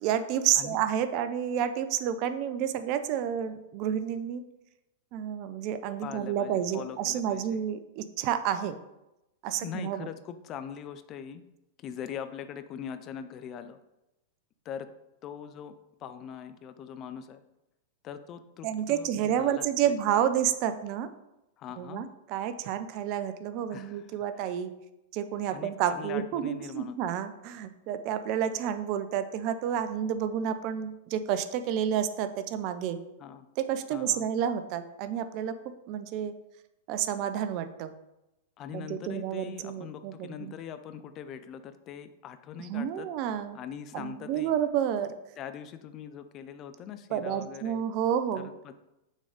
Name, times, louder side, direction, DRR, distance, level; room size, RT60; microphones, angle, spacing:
voice 1, 0.0-4.4 5.1-8.8 9.4-10.1 18.6-21.1 21.8-24.7 25.1-33.0 33.6-35.6 35.9-36.3 36.9-37.9 38.7-40.5 42.6-43.6 43.9-45.1 47.1-48.5, right 9 dB, 45° right, 11 dB, 0.5 m, -30 dB
voice 2, 6.0-7.6 9.6-11.4 11.8-13.8 14.6-14.9 15.2-15.7 16.0-17.4 18.0-19.9 21.6-22.1 23.7-24.5 25.5-27.0 33.2-33.5 33.9-34.3 38.6-43.1 43.5-44.5 45.4-47.8 48.3-48.7, left 8 dB, 35° left, 10 dB, 0.5 m, -42 dB
6.3 x 3.8 x 5.1 m, 0.92 s
hypercardioid pair, 100°, 0 cm